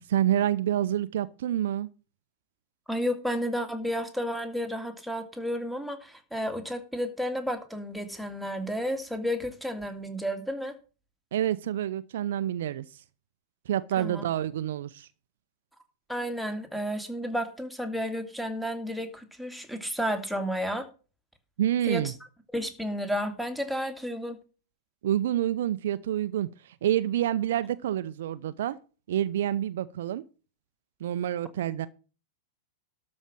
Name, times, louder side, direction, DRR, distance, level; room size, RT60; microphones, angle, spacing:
voice 1, 0.0-1.9 11.3-13.0 13.7-15.1 21.6-22.1 25.0-28.8 29.1-30.2 31.0-31.9, right 11 dB, 60° right, 0.6 m, -28 dB
voice 2, 2.9-10.7 14.0-14.2 16.1-20.9 21.9-22.0 22.5-24.4, equal, ahead, 2.2 m, -32 dB
12.5 x 5.3 x 7.4 m
figure-of-eight pair, 95°, 0 cm